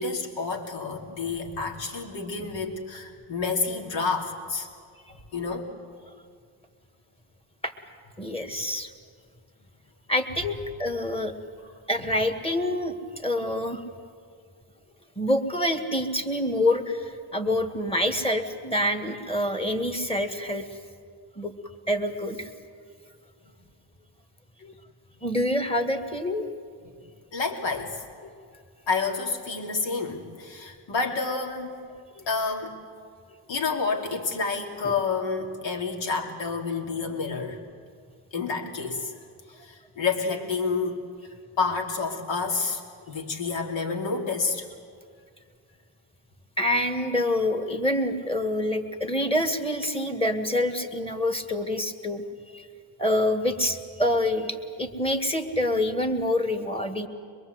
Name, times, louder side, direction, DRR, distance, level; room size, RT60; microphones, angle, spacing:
voice 1, 0.0-4.7 5.3-5.7 11.6-11.7 27.3-28.0 28.9-31.8 32.3-32.8 33.5-37.6 38.3-39.1 39.5-41.1 41.6-42.8 43.1-44.7, left 4 dB, 70° left, 1 dB, 2.9 m, -29 dB
voice 2, 8.2-8.9 10.1-11.3 11.9-13.8 15.2-20.7 21.4-21.5 21.9-22.5 24.6-24.7 25.2-26.5 28.2-28.3 32.2-32.3 34.8-34.9 46.6-52.2 52.5-52.7 53.0-57.1, left 1 dB, 10° left, 5 dB, 2.0 m, -26 dB
23.5 x 22.0 x 8.0 m, 2.2 s
cardioid pair, 100°, 46 cm